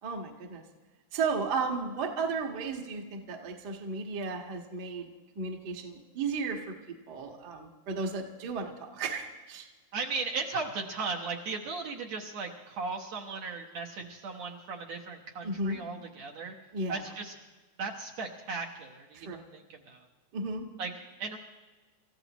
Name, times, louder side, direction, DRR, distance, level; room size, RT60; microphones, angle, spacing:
voice 1, 0.0-0.6 1.1-5.1 5.3-6.7 7.1-9.7 15.4-15.8 16.7-17.0 19.1-19.4 20.3-20.7, right 4 dB, 40° right, 1 dB, 1.5 m, -34 dB
voice 2, 9.9-16.5 16.9-17.3 17.8-20.0 20.8-20.9 21.2-21.4, right 4 dB, 60° right, 0 dB, 2.1 m, -37 dB
28.0 x 15.0 x 3.0 m, 1.3 s
omnidirectional pair, 4.0 m